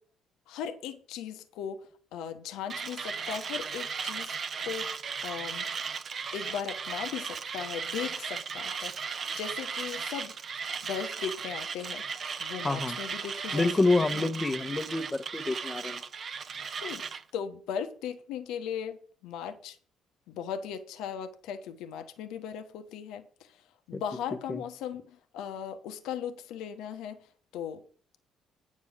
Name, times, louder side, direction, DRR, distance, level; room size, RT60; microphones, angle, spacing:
voice 1, 0.5-4.3 4.6-5.7 6.3-10.3 10.8-12.1 12.4-13.7 14.0-14.3 16.8-17.0 17.3-19.8 20.3-27.3 27.5-27.8, left 8 dB, 70° left, 1.1 m, -38 dB
Mechanisms, 2.7-17.2, right 6 dB, 50° right, 0.9 m, -36 dB
voice 2, 12.6-13.0 13.5-16.0 23.9-24.0 24.5-24.6, left 2 dB, 25° left, 1.2 m, -27 dB
9.6 x 6.3 x 6.2 m
hypercardioid pair, 45°, 0 cm